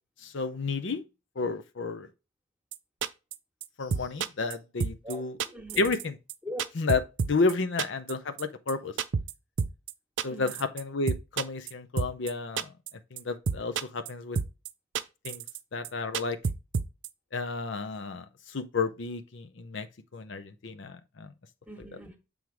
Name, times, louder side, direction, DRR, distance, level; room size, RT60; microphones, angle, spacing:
voice 1, 0.2-1.0 1.4-2.1 3.8-5.4 5.8-6.1 6.8-8.9 10.2-12.7 13.1-14.4 15.2-15.4 15.7-16.4 17.3-19.9 20.1-21.3, left 3 dB, 60° left, 0.6 m, -31 dB
sound 1, 2.7-2.8 3.0-3.3 3.6-3.7 3.9-4.5 4.8-5.1 5.4-6.0 6.3-6.4 6.6-7.5 7.8-8.1 8.4-8.5 8.7-8.8 9.0-9.3 9.6-9.9 10.2-10.8 11.1-11.7 12.0-12.3 12.6-12.9 13.2-13.3 13.5-14.1 14.3-14.7 14.9-15.6 15.8-15.9 16.1-17.1, right 5 dB, 60° right, 0.5 m, -29 dB
voice 2, 5.0-5.9 6.4-6.6 10.3-10.6 21.7-22.2, equal, 5° right, 1.5 m, -41 dB
7.8 x 3.5 x 4.6 m
head